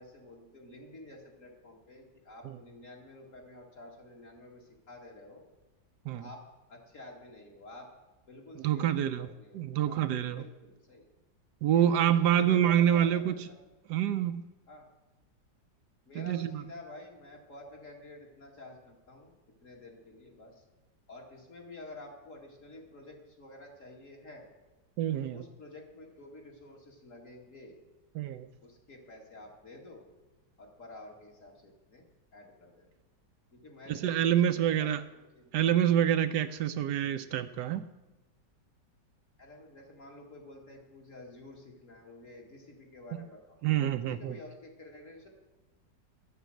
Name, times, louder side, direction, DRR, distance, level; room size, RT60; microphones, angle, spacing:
voice 1, 0.0-5.4 6.2-7.9 8.3-11.1 11.7-13.6 14.7-14.9 16.0-19.3 19.6-20.6 21.1-24.5 25.2-27.8 28.6-30.0 30.6-32.0 32.3-32.9 33.5-35.5 39.4-43.6 44.1-45.3, left 2 dB, 45° left, 0 dB, 2.5 m, -50 dB
voice 2, 8.6-9.3 9.5-10.4 11.6-13.4 13.9-14.4 16.1-16.5 25.0-25.4 28.2-28.5 33.9-35.0 35.5-37.9 43.6-44.3, right 10 dB, 75° right, 10 dB, 1.1 m, -27 dB
12.5 x 8.1 x 7.7 m, 1.1 s
omnidirectional pair, 1.9 m